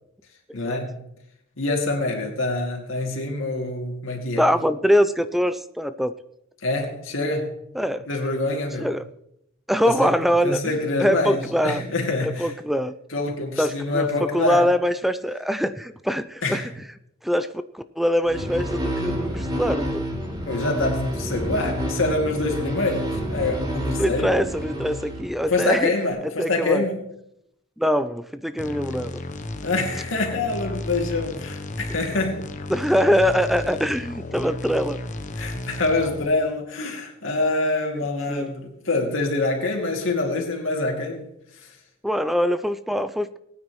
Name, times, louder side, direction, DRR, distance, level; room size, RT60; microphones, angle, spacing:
voice 1, 0.5-1.0 1.6-4.5 6.6-7.5 8.1-8.9 9.8-12.5 13.1-14.7 16.4-16.7 20.5-24.3 25.5-27.1 29.6-32.5 35.4-41.3 41.6-41.8, left 2 dB, 85° left, 2.6 m, -25 dB
voice 2, 4.4-6.1 7.8-8.0 8.8-9.0 9.7-10.6 11.0-11.8 12.2-12.9 13.6-16.6 17.2-17.5 17.7-20.1 24.0-25.9 26.4-26.8 27.8-29.1 32.7-35.0 38.0-38.4 42.0-43.4, equal, ahead, 0.4 m, -23 dB
sound 1, 18.2-25.7, equal, 25° right, 2.7 m, -29 dB
sound 2, 28.6-36.3, left 2 dB, 40° left, 0.9 m, -34 dB
19.5 x 9.5 x 3.1 m
head